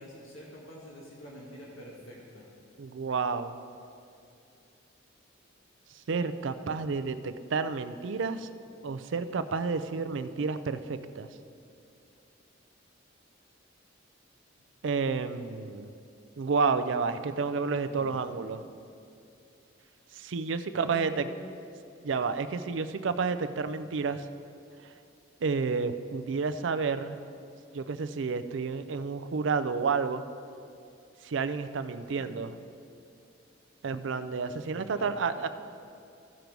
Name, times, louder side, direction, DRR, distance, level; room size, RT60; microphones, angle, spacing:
voice 1, 0.0-2.5 17.9-18.6 20.7-21.3 34.6-35.1, left 1 dB, 80° left, -4 dB, 1.6 m, -46 dB
voice 2, 2.8-3.6 6.1-8.5 8.8-11.3 14.8-15.9 16.4-18.6 20.1-21.2 22.0-24.2 25.4-27.2 27.7-30.2 31.2-32.6 33.8-35.5, right 5 dB, 70° right, 11 dB, 0.4 m, -30 dB
15.5 x 5.3 x 4.6 m, 2.5 s
head